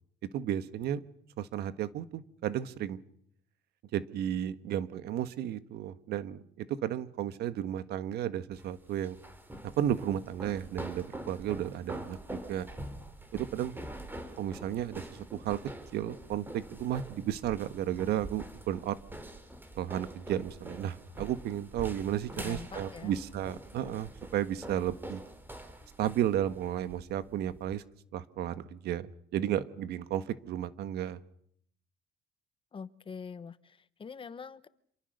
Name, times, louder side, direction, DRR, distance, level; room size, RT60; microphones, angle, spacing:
voice 1, 0.3-1.0 1.4-3.0 3.9-9.2 9.8-12.7 13.3-13.8 14.4-15.6 15.9-19.0 19.8-25.2 26.0-27.8 28.1-31.2, right 11 dB, 75° right, 12 dB, 1.5 m, -33 dB
sound 1, 8.5-27.7, right 1 dB, 10° right, 3.7 m, -45 dB
voice 2, 22.3-23.1 32.7-34.7, left 6 dB, 30° left, 14 dB, 1.2 m, -44 dB
27.5 x 27.0 x 6.7 m, 0.67 s
cardioid pair, 110°, 17 cm